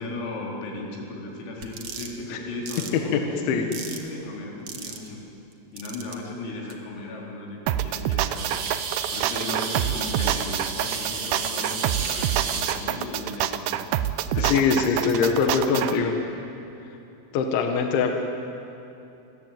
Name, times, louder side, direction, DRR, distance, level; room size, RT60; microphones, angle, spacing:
voice 1, 0.0-5.2 5.7-8.7 9.1-13.8 14.3-14.7 15.1-16.2 17.6-17.7, left 2 dB, 85° left, -1 dB, 6.8 m, -36 dB
sound 1, 1.6-2.1 2.7-2.9 3.7-4.1 4.7-5.1 5.8-6.1 6.7-6.8 8.3-12.8, right 6 dB, 60° right, 1.7 m, -32 dB
sound 2, 7.7-15.9, right 12 dB, 80° right, 2.4 m, -26 dB
voice 2, 14.4-16.1 17.3-18.1, left 5 dB, 70° left, 4 dB, 3.8 m, -22 dB
29.5 x 21.5 x 9.1 m, 2.8 s
omnidirectional pair, 5.9 m